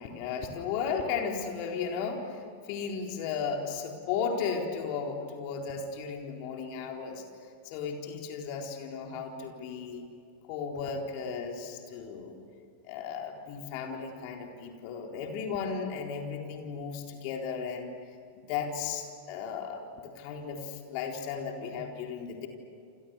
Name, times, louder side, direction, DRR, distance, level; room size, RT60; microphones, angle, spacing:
voice 1, 0.0-10.1 10.4-12.4 12.8-17.9 18.3-22.5, left 6 dB, 45° left, 2 dB, 4.0 m, -35 dB
28.5 x 28.0 x 6.9 m, 2.4 s
figure-of-eight pair, 90°, 0 cm